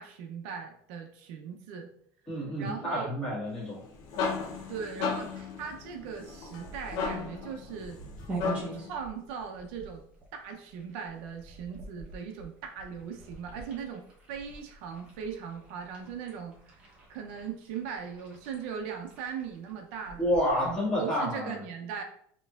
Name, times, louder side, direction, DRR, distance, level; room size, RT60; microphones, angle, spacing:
voice 1, 0.0-1.9 2.6-3.1 4.7-8.0 8.7-10.1 10.3-16.8 17.1-20.3 20.6-22.0, right 7 dB, 75° right, 4 dB, 0.6 m, -39 dB
voice 2, 2.3-3.8 20.2-21.6, equal, 10° left, -8 dB, 1.7 m, -29 dB
sound 1, 3.7-8.9, left 5 dB, 60° left, 0.7 m, -35 dB
sound 2, 6.5-21.0, right 3 dB, 20° right, 0.9 m, -46 dB
5.5 x 3.0 x 2.4 m, 0.65 s
cardioid pair, 175°, 7 cm